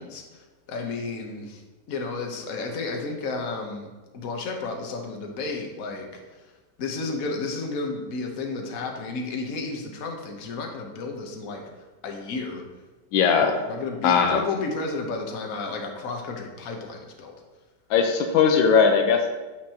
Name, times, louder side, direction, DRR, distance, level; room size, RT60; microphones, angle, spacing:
voice 1, 0.0-1.6 1.9-6.5 6.8-11.6 12.0-12.6 13.7-17.3, left 3 dB, 50° left, 2 dB, 1.3 m, -32 dB
voice 2, 13.1-13.6 14.0-14.4 17.9-19.3, left 6 dB, 85° left, 5 dB, 1.4 m, -19 dB
9.2 x 6.4 x 2.9 m, 1.3 s
omnidirectional pair, 2.1 m